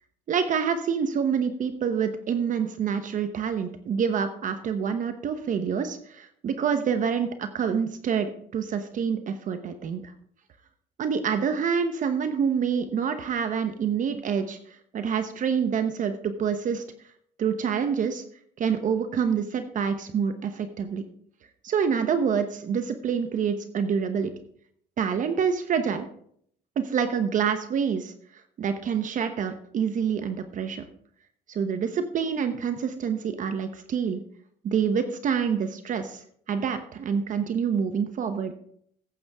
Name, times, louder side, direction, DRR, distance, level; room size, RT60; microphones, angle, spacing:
voice 1, 0.3-10.1 11.0-16.8 17.4-18.2 18.6-21.0 21.6-24.3 25.0-26.1 26.8-28.1 28.6-30.8 31.5-34.2 34.6-38.5, right 7 dB, 50° right, 9 dB, 1.0 m, -27 dB
15.5 x 7.9 x 3.5 m, 0.64 s
cardioid pair, 110°, 17 cm